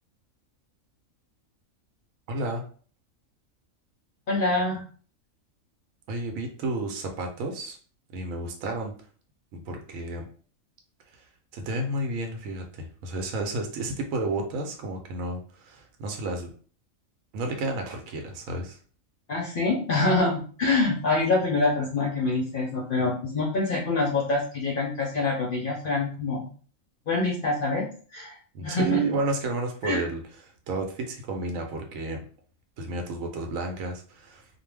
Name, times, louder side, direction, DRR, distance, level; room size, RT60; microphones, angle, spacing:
voice 1, 2.3-2.7 6.1-7.8 8.1-8.9 9.5-10.3 11.5-16.5 17.3-18.8 28.5-32.2 32.8-34.5, right 2 dB, 80° right, 3 dB, 1.0 m, -31 dB
voice 2, 4.3-4.9 19.3-26.5 27.1-28.3 28.6-29.0 29.8-30.0, left 3 dB, 55° left, -2 dB, 0.6 m, -25 dB
2.5 x 2.1 x 3.2 m, 0.42 s
omnidirectional pair, 1.4 m